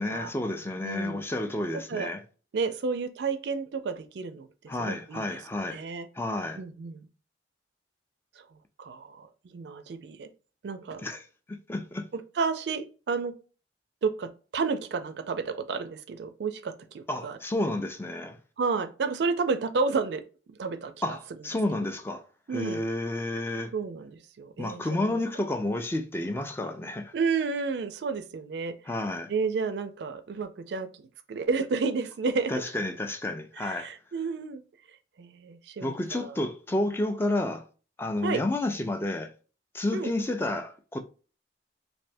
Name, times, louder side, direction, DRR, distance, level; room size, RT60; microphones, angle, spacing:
voice 1, 0.0-2.2 4.7-5.8 6.2-6.6 11.0-11.2 11.5-12.1 17.1-18.4 21.0-22.2 22.5-23.7 24.6-27.1 28.9-29.3 32.5-33.9 35.8-37.6 38.0-39.3 39.7-41.0, left 1 dB, 15° left, 0.3 m, -30 dB
voice 2, 0.8-1.2 1.9-2.1 2.5-4.5 4.8-5.3 5.7-6.1 6.6-7.1 8.8-10.3 10.6-11.0 12.1-13.3 14.0-17.4 18.6-20.2 20.5-21.2 22.5-22.8 23.7-25.2 27.1-28.7 29.3-32.5 33.6-34.6 35.2-36.4 38.2-38.4 39.9-40.1, right 4 dB, 65° right, 0.4 m, -31 dB
3.3 x 2.6 x 2.6 m
head